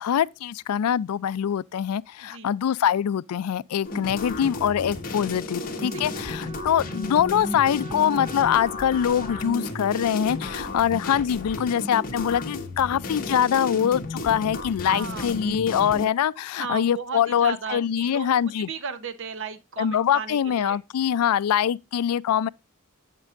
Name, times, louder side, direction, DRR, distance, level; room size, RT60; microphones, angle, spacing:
voice 1, 0.0-18.7 19.8-22.5, left 9 dB, 90° left, 0.3 m, -24 dB
sound 1, 3.8-16.1, left 2 dB, 40° left, 1.4 m, -33 dB
Wind instrument woodwind instrument, 5.7-10.1, right 1 dB, 30° right, 2.1 m, -42 dB
voice 2, 14.8-15.3 16.6-18.3 18.6-20.8, right 5 dB, 60° right, 0.8 m, -35 dB
8.1 x 7.5 x 2.4 m
head